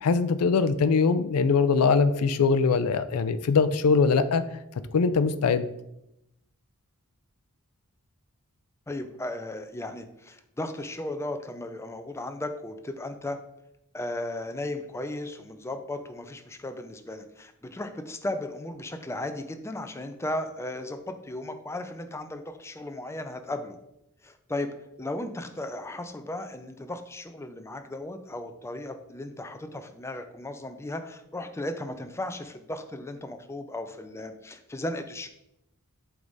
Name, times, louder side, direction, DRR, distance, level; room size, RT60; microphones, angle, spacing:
voice 1, 0.0-4.4 4.9-5.7, left 5 dB, 85° left, 13 dB, 0.4 m, -22 dB
voice 2, 8.9-13.4 13.9-23.8 24.2-24.7 25.0-35.3, left 1 dB, 10° left, 7 dB, 0.4 m, -35 dB
8.0 x 3.6 x 4.0 m, 0.83 s
head